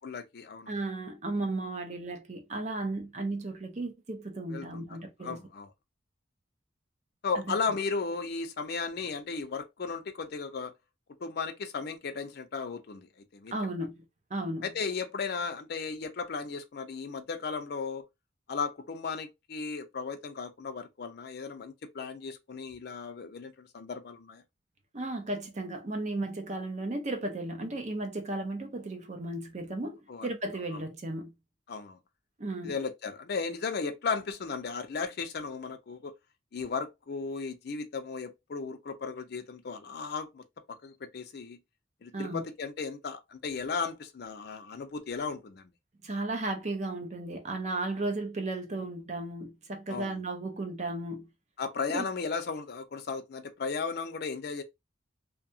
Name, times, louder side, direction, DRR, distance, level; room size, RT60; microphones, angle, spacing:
voice 1, 0.0-0.8 4.5-4.8 5.2-5.7 7.2-10.7 11.2-13.5 14.6-18.0 18.5-24.4 30.1-30.3 30.7-30.8 31.7-32.0 32.6-36.1 36.5-41.6 42.0-45.7 49.9-50.2 51.6-54.6, left 5 dB, 55° left, 0.5 m, -35 dB
voice 2, 0.7-5.4 7.5-7.6 13.5-14.0 14.3-14.7 24.9-31.3 32.4-32.7 42.1-42.4 46.0-51.3 51.9-52.0, right 2 dB, 40° right, 0.6 m, -35 dB
2.7 x 2.2 x 2.6 m
head